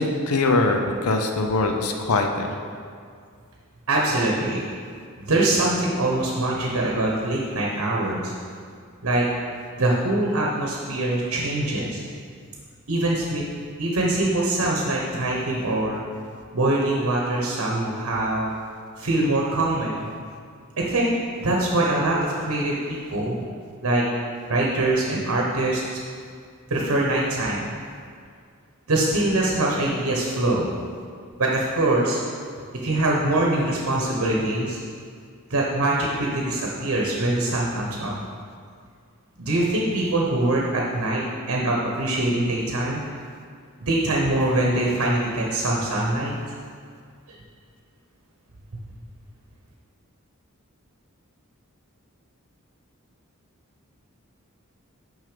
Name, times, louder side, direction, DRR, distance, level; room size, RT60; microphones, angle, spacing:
voice 1, 0.0-2.5, left 2 dB, 90° left, 4 dB, 0.7 m, -22 dB
voice 2, 3.9-4.6 5.2-8.3 9.0-9.2 9.8-12.0 12.9-13.4 13.8-16.0 16.5-18.5 19.0-20.0 20.9-21.1 21.4-23.4 23.8-24.0 24.5-25.8 26.7-27.6 28.9-30.7 31.4-32.2 32.8-34.8 35.5-38.1 39.4-43.0 43.8-46.3, right 2 dB, 70° right, -2 dB, 1.0 m, -23 dB
6.2 x 5.5 x 5.1 m, 2.2 s
head